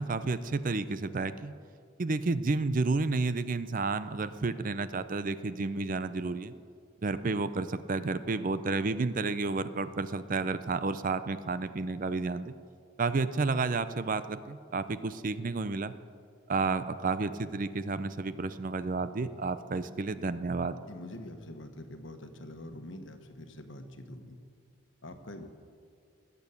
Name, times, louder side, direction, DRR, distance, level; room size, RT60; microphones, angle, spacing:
voice 1, 0.0-1.5 2.0-6.5 7.0-12.5 13.0-15.9 16.5-20.8, right 3 dB, 40° right, 13 dB, 0.5 m, -31 dB
voice 2, 20.9-24.4 25.0-25.5, left 1 dB, 65° left, 7 dB, 1.3 m, -45 dB
20.0 x 8.3 x 7.1 m, 2.2 s
head